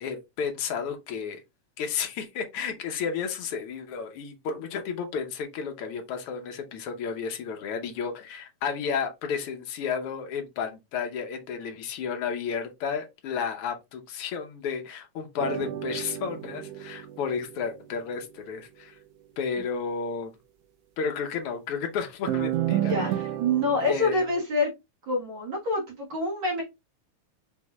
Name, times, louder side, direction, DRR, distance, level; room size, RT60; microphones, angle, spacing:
voice 1, 0.0-1.4 1.8-19.0 19.4-20.3 21.0-22.9 23.9-24.2, left 6 dB, 75° left, 1.3 m, -32 dB
sound 1, 15.4-18.0 22.3-24.0, right 12 dB, 85° right, 1.3 m, -31 dB
voice 2, 22.7-24.7 25.1-26.6, left 1 dB, 50° right, 1.7 m, -26 dB
5.5 x 3.1 x 2.2 m
omnidirectional pair, 3.5 m